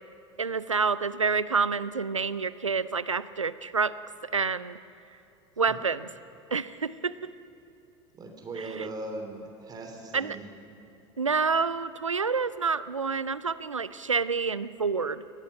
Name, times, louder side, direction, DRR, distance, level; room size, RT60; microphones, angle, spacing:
voice 1, 0.4-3.9 4.3-4.8 5.6-6.1 6.5-7.3 8.6-8.9 10.1-10.4 11.2-15.2, right 5 dB, 85° right, 16 dB, 0.5 m, -28 dB
voice 2, 8.1-10.5, right 2 dB, 25° right, 3 dB, 3.1 m, -39 dB
25.0 x 18.0 x 5.7 m, 2.9 s
figure-of-eight pair, 75°, 16 cm